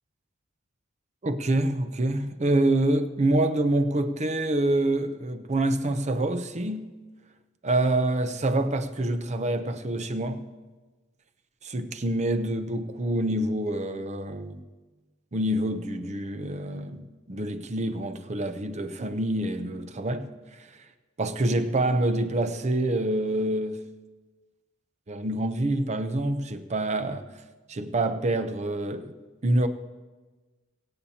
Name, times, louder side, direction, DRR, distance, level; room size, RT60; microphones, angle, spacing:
voice 1, 1.2-6.9 7.6-10.5 11.6-14.6 15.3-20.9 21.2-23.8 25.1-27.3 27.7-29.1 29.4-29.7, right 1 dB, 30° right, 0.6 m, -26 dB
24.0 x 8.5 x 2.8 m
head